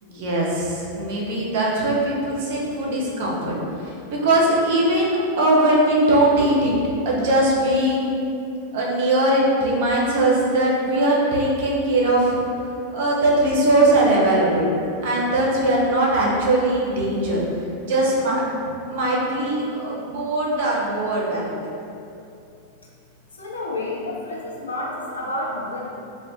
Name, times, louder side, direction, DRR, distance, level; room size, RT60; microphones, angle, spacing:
voice 1, 0.0-6.7 7.0-8.1 8.7-12.4 12.9-14.7 15.0-17.4 17.9-18.4 18.9-21.6, right 1 dB, 50° right, -4 dB, 0.6 m, -20 dB
voice 2, 23.3-25.9, left 1 dB, 70° left, -3 dB, 0.5 m, -29 dB
2.5 x 2.4 x 3.5 m, 2.7 s
figure-of-eight pair, 90°, 0 cm